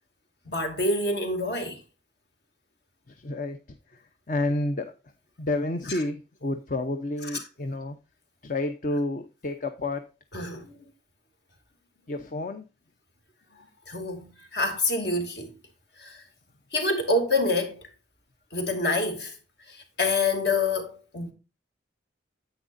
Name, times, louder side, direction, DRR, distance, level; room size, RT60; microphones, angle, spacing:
voice 1, 0.5-1.8 5.9-6.0 7.3-7.4 10.3-10.7 13.9-15.5 16.0-16.2 16.7-17.8 18.5-19.3 19.7-21.3, left 2 dB, 65° left, 2.4 m, -27 dB
voice 2, 3.1-3.6 3.9-4.0 4.3-4.9 5.4-8.0 8.4-10.0 12.1-12.6, left 2 dB, 45° left, 0.7 m, -30 dB
10.0 x 8.3 x 2.6 m
head